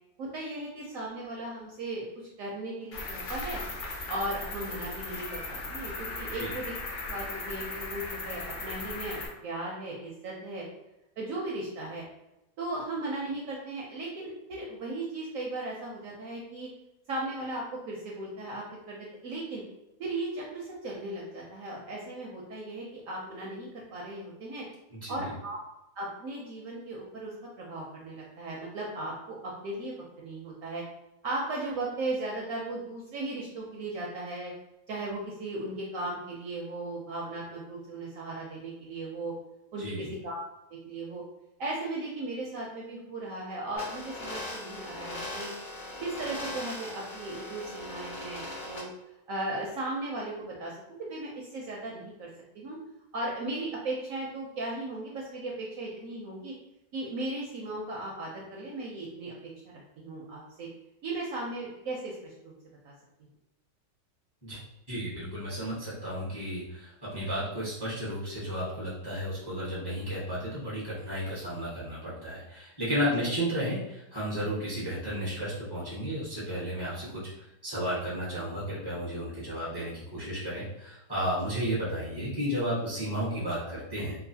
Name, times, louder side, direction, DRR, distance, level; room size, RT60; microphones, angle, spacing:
voice 1, 0.2-3.6 4.1-6.7 7.0-10.6 11.2-12.0 12.6-16.7 17.1-19.6 20.0-24.7 25.1-25.6 26.0-30.8 31.2-34.5 34.9-39.3 39.7-40.4 40.7-41.2 41.6-45.5 46.0-48.9 49.3-52.3 52.5-52.8 53.1-56.5 56.9-59.3 60.0-60.7 61.0-62.5 62.8-62.9 73.2-73.3, right 2 dB, 70° right, -3 dB, 0.8 m, -37 dB
Cricket, 2.9-9.3, left 2 dB, 65° left, 1.0 m, -37 dB
voice 2, 24.9-25.3 39.8-40.1 64.4-64.6 64.9-77.2 77.6-84.2, equal, 20° left, -8 dB, 0.6 m, -33 dB
sound 1, 43.8-48.8, left 1 dB, 40° left, 1.1 m, -39 dB
3.0 x 2.4 x 2.7 m, 0.91 s
omnidirectional pair, 1.8 m